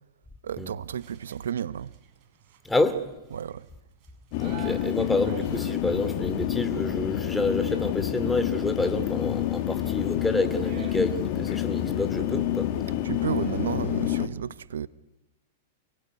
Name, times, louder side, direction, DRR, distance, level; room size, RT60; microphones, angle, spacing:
voice 1, 0.4-1.9 3.3-3.7 13.0-14.9, right 8 dB, 80° right, 0.9 m, -32 dB
sound 1, 0.9-13.7, right 7 dB, 45° right, 7.2 m, -50 dB
voice 2, 2.6-3.0 4.4-12.7, left 2 dB, 5° left, 2.9 m, -28 dB
sound 2, 4.3-14.3, left 12 dB, 50° left, 2.4 m, -28 dB
29.0 x 20.0 x 9.7 m
hypercardioid pair, 115°, 0 cm